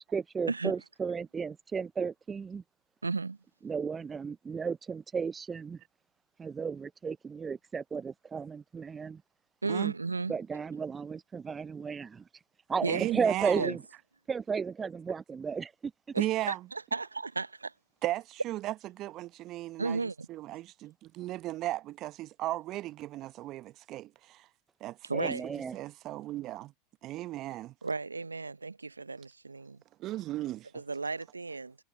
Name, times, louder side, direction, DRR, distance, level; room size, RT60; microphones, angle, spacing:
voice 1, 0.0-2.6 3.6-5.8 6.4-9.2 10.3-12.2 12.7-13.8 14.3-15.7 25.1-25.7, right 5 dB, 20° right, 0.5 m, -34 dB
voice 2, 3.0-3.4 9.6-10.3 12.8-13.0 13.6-13.8 16.1-17.7 19.8-20.3 25.0-25.5 27.8-29.8 30.7-31.8, right 4 dB, 85° right, 0.7 m, -34 dB
voice 3, 12.9-13.7 16.2-16.6 18.0-20.0 20.3-24.5 24.8-25.0 25.2-26.7 27.0-27.7 30.0-30.7, right 15 dB, 40° right, 0.9 m, -36 dB
figure-of-eight pair, 85°, 0 cm